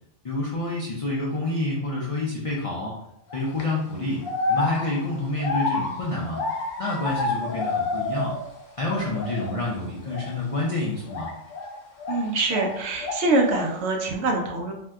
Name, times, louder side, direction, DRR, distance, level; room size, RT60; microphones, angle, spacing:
voice 1, 0.2-3.0 3.3-4.2 4.5-6.4 6.8-8.3 8.8-11.3, left 2 dB, 65° left, -4 dB, 0.3 m, -28 dB
sound 1, 3.3-3.6 4.2-8.6 8.9-9.6 10.1-10.3 11.1-12.7 13.0-13.8, left 3 dB, 80° left, 1.1 m, -29 dB
voice 2, 12.1-14.7, right 2 dB, 65° right, 1 dB, 0.8 m, -24 dB
2.7 x 2.2 x 3.4 m, 0.79 s
omnidirectional pair, 1.3 m